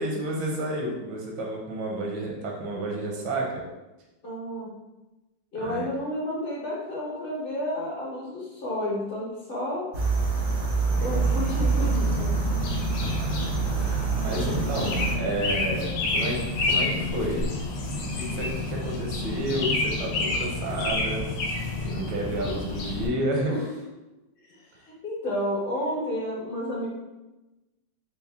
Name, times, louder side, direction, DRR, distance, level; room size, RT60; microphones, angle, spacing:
voice 1, 0.0-3.6 5.6-5.9 12.9-17.4 17.9-21.2 21.8-23.5, right 1 dB, 85° right, -1 dB, 1.6 m, -31 dB
voice 2, 4.2-4.8 5.5-9.8 11.0-12.3 23.5-23.6 24.5-24.6 25.0-26.9, left 1 dB, 40° left, -5 dB, 0.8 m, -31 dB
sound 1, 9.9-15.2, right 5 dB, 60° right, 0.8 m, -26 dB
sound 2, 11.0-23.1, left 3 dB, 75° left, 1.1 m, -29 dB
4.1 x 2.0 x 3.4 m, 1.0 s
omnidirectional pair, 2.2 m